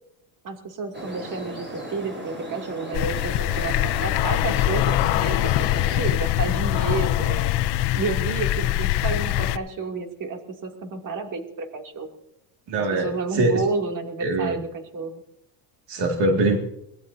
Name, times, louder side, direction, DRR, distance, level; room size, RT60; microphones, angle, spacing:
voice 1, 0.4-7.5 7.9-12.1 12.9-15.2, right 4 dB, 40° right, 4 dB, 2.7 m, -31 dB
sound 1, 0.9-6.1, right 1 dB, 25° right, 6.6 m, -36 dB
sound 2, 2.9-9.6, left 14 dB, 60° left, 0.8 m, -23 dB
voice 2, 12.7-13.6 14.2-14.6 15.9-16.6, right 2 dB, 60° right, 3 dB, 2.3 m, -22 dB
23.0 x 19.0 x 2.7 m, 0.81 s
cardioid pair, 125°, 46 cm